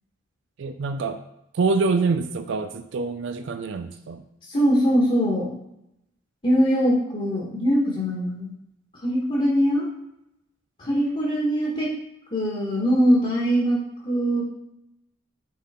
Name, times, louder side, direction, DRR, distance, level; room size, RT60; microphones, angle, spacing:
voice 1, 0.6-1.2 1.5-4.2, right 4 dB, 60° right, 8 dB, 0.4 m, -25 dB
voice 2, 4.5-5.5 6.4-8.5 9.0-9.8 10.9-11.9 12.3-14.4, equal, 30° left, -5 dB, 1.4 m, -22 dB
7.5 x 3.6 x 4.2 m, 0.84 s
head